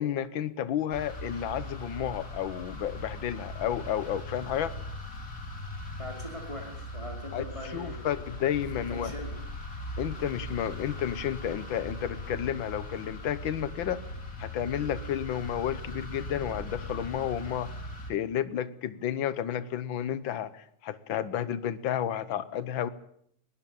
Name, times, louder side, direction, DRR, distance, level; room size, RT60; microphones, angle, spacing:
voice 1, 0.0-4.7 7.3-7.5 7.7-9.1 10.0-14.0 14.4-17.7 18.1-22.9, left 10 dB, 60° left, 15 dB, 1.3 m, -31 dB
sound 1, 0.9-18.1, left 1 dB, 30° left, 3.3 m, -40 dB
voice 2, 6.0-8.1 8.8-9.4, left 1 dB, 10° left, 2 dB, 4.7 m, -41 dB
21.0 x 17.5 x 8.7 m, 0.68 s
omnidirectional pair, 3.3 m